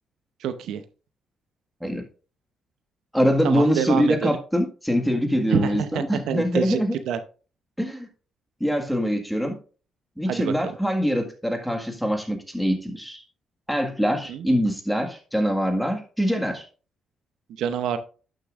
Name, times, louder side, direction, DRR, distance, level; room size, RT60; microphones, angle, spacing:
voice 1, 0.4-0.8 3.4-4.3 5.5-6.8 7.1-7.2 10.3-10.7 14.3-14.5 17.6-18.0, right 8 dB, 80° right, 10 dB, 0.7 m, -27 dB
voice 2, 3.1-7.0 7.8-8.1 8.6-9.6 10.2-13.2 13.7-16.6, equal, ahead, 3 dB, 1.7 m, -24 dB
11.5 x 6.7 x 2.5 m, 0.37 s
cardioid pair, 90°, 0 cm